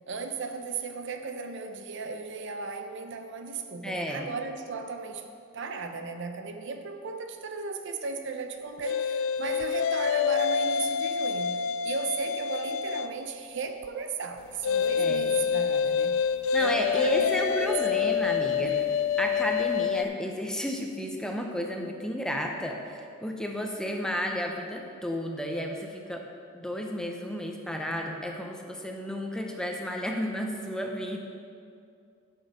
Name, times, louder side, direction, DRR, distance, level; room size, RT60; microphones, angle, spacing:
voice 1, 0.1-5.3 5.5-16.2 16.6-17.7 18.2-18.8, right 4 dB, 60° right, 6 dB, 0.6 m, -36 dB
voice 2, 3.8-4.3 15.0-15.2 16.5-18.8 19.2-26.2 26.5-31.2, equal, 5° left, 1 dB, 0.7 m, -32 dB
sound 1, 8.8-13.2 14.6-20.0, left 7 dB, 65° left, 0.3 m, -27 dB
10.5 x 6.2 x 5.3 m, 2.4 s
head